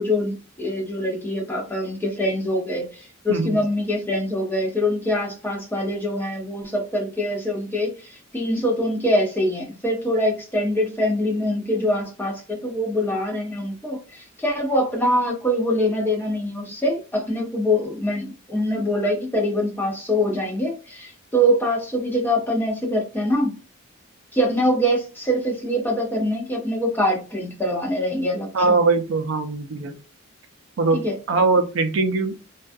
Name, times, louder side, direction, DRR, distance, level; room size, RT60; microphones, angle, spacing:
voice 1, 0.0-23.6 24.3-28.8 30.9-31.2, equal, 10° left, -1 dB, 0.7 m, -24 dB
voice 2, 28.5-30.0 30.8-31.0 31.3-32.4, right 3 dB, 70° right, 7 dB, 0.4 m, -21 dB
2.3 x 2.3 x 2.5 m, 0.32 s
head